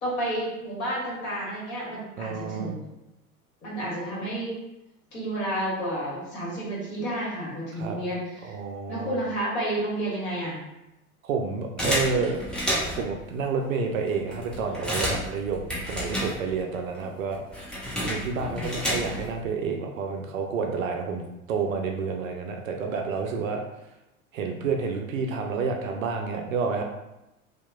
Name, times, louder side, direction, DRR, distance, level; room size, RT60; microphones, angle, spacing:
voice 1, 0.0-2.8 3.6-4.5 5.1-8.6 8.9-10.6 18.4-18.8, right 1 dB, 40° left, -6 dB, 1.5 m, -31 dB
voice 2, 2.2-2.7 7.7-8.0 8.4-9.2 11.2-12.4 12.9-17.4 18.0-23.6 24.3-26.8, right 5 dB, 65° right, 3 dB, 0.5 m, -29 dB
sound 1, 11.8-13.1 13.8-13.9 14.1-16.7 17.0-19.4, equal, ahead, 0.4 m, -30 dB
2.8 x 2.1 x 2.3 m, 0.94 s
figure-of-eight pair, 75°, 43 cm